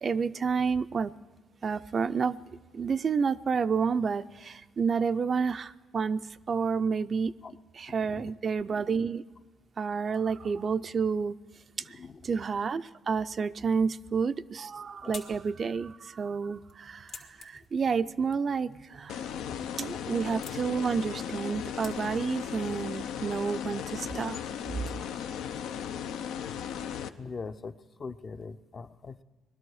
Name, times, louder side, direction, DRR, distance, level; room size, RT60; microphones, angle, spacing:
voice 1, 0.0-1.1 1.6-2.4 2.7-7.3 7.7-9.2 9.8-11.4 12.2-19.3 19.8-24.4 25.0-25.1, right 5 dB, 45° right, 12 dB, 0.4 m, -30 dB
voice 2, 11.8-12.3 15.0-15.2 19.4-19.7 19.9-20.0 25.5-25.6 27.2-29.2, left 4 dB, 40° left, 9 dB, 0.6 m, -42 dB
sound 1, 14.4-22.4, left 6 dB, 75° left, 1.8 m, -52 dB
sound 2, 19.1-27.1, left 8 dB, 90° left, 0.6 m, -36 dB
19.5 x 12.5 x 4.8 m, 1.4 s
cardioid pair, 90°, 0 cm